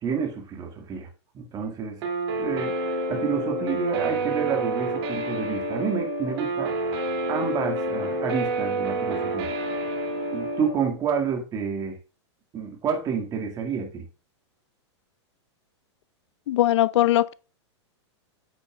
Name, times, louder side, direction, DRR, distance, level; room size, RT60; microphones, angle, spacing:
voice 1, 0.0-1.1 1.3-2.1 2.4-9.5 10.3-11.9 12.5-14.0, right 6 dB, 25° right, 1.8 m, -29 dB
Guitar, 2.0-10.7, right 2 dB, 65° right, 2.6 m, -28 dB
voice 2, 16.5-17.3, left 14 dB, 75° left, 0.4 m, -20 dB
8.9 x 6.7 x 2.3 m
hypercardioid pair, 135°, 15 cm